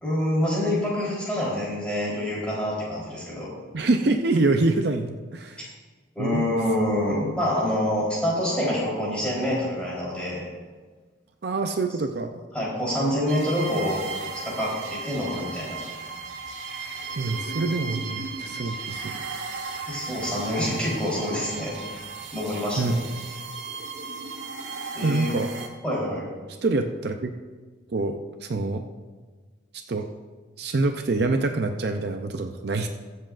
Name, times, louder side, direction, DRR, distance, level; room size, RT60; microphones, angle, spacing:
voice 1, 0.0-3.5 5.6-5.7 6.1-10.5 12.5-15.8 19.9-21.7 22.3-23.0 24.9-25.3 25.8-26.3, left 1 dB, 5° left, -7 dB, 3.7 m, -26 dB
voice 2, 3.7-5.7 6.2-6.4 11.4-12.4 17.2-19.2 22.8-23.0 25.0-25.5 26.6-27.3 27.9-28.8 29.7-30.1 30.6-32.9, right 3 dB, 55° right, 6 dB, 0.5 m, -25 dB
Eerie Experiemntal Music Test, 13.3-25.7, right 4 dB, 80° right, 1.3 m, -35 dB
22.0 x 7.6 x 2.5 m, 1.4 s
head